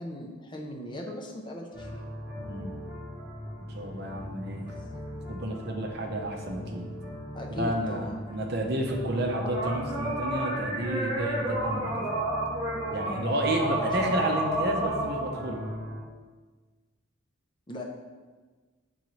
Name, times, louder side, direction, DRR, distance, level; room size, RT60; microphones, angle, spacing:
voice 1, 0.0-2.1 4.5-4.8 7.3-8.3 13.7-14.0 17.7-17.8, left 1 dB, 20° left, 0 dB, 0.6 m, -39 dB
sound 1, 1.7-16.0, right 1 dB, 15° right, 1.8 m, -33 dB
voice 2, 2.4-2.8 3.7-4.6 5.3-6.9 7.6-12.0 12.9-15.6, right 1 dB, 50° right, 2 dB, 0.7 m, -31 dB
8.1 x 3.8 x 3.1 m, 1.4 s
head